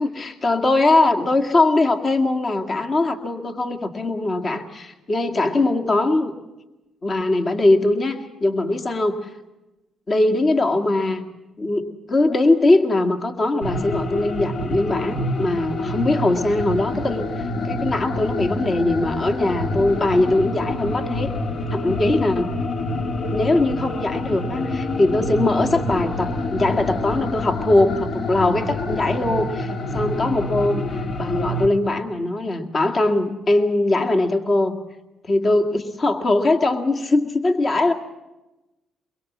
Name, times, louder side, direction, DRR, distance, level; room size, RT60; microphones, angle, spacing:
voice 1, 0.0-6.3 7.0-9.2 10.1-11.2 11.6-21.3 21.7-22.5 23.3-34.7 35.2-37.9, left 2 dB, 40° left, 4 dB, 2.0 m, -21 dB
sound 1, 13.6-31.7, left 2 dB, 60° left, 2.3 m, -27 dB
23.5 x 22.5 x 7.3 m, 1.0 s
cardioid pair, 90°, 0 cm